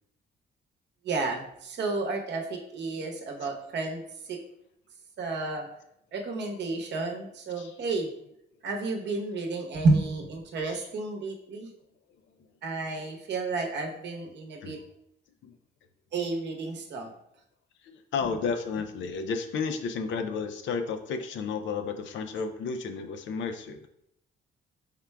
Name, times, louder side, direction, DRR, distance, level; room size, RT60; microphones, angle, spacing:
voice 1, 1.0-4.0 4.3-4.4 5.2-5.7 6.1-8.1 8.6-11.7 12.6-14.8 16.1-17.1, right 3 dB, 65° right, 1 dB, 0.8 m, -31 dB
voice 2, 17.8-23.9, left 5 dB, 80° left, 7 dB, 0.5 m, -32 dB
4.5 x 3.7 x 2.2 m, 0.77 s
cardioid pair, 100°, 19 cm